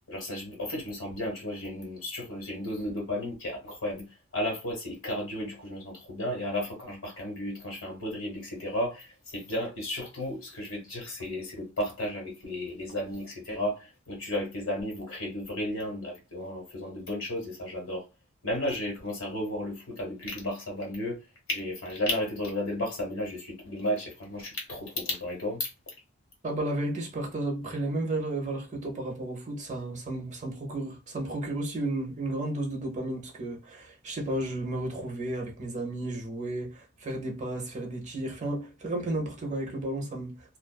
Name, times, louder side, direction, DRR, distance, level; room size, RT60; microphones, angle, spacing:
voice 1, 0.1-4.0 4.3-18.0 18.4-21.2 21.5-25.7, left 1 dB, 75° left, 1.4 m, -33 dB
voice 2, 26.4-40.3, right 1 dB, 35° right, 0.8 m, -33 dB
2.5 x 2.4 x 2.2 m
head